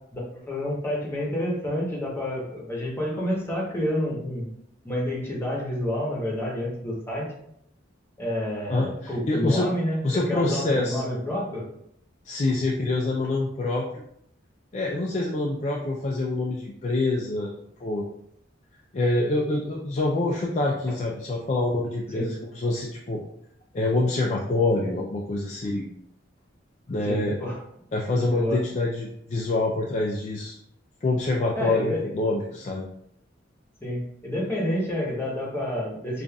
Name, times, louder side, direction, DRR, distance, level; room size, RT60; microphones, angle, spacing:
voice 1, 0.1-4.5 4.8-7.3 8.2-11.6 22.1-22.3 27.0-27.6 28.3-28.6 31.5-32.1 33.8-36.2, left 1 dB, 15° left, -4 dB, 1.0 m, -29 dB
voice 2, 8.7-9.7 10.0-11.0 12.2-13.9 14.7-17.5 17.8-18.0 18.9-23.2 23.7-25.8 26.9-27.4 27.9-30.6 31.0-32.9, left 2 dB, 35° left, -2 dB, 0.4 m, -26 dB
5.3 x 2.5 x 2.3 m, 0.72 s
head